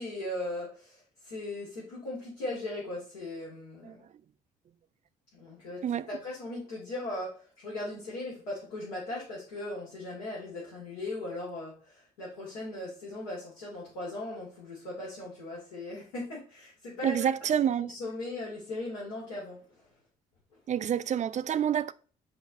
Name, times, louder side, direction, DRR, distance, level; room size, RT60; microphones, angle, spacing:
voice 1, 0.0-4.0 5.3-17.3 17.6-19.9, left 2 dB, 70° left, 2.8 m, -38 dB
voice 2, 17.0-17.9 20.7-21.9, right 9 dB, 35° right, 0.5 m, -28 dB
9.5 x 3.4 x 4.2 m
figure-of-eight pair, 45°, 21 cm